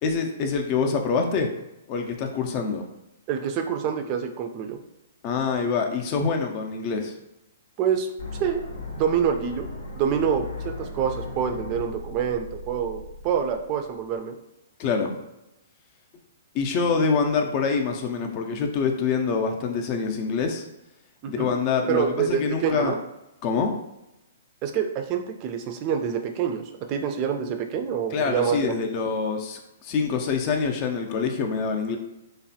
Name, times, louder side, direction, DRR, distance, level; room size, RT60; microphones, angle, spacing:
voice 1, 0.0-1.5 1.9-2.8 5.2-7.1 14.8-15.2 16.5-20.7 21.3-22.9 23.4-23.7 28.1-32.0, left 5 dB, 40° left, 4 dB, 0.5 m, -25 dB
voice 2, 3.3-4.8 7.8-8.1 8.4-9.7 9.9-14.4 21.2-21.5 21.9-23.0 24.6-28.9, right 7 dB, 35° right, 5 dB, 0.4 m, -26 dB
sound 1, 8.2-14.2, left 2 dB, 75° left, 0.8 m, -38 dB
3.2 x 2.1 x 2.7 m, 0.91 s
hypercardioid pair, 125°, 0 cm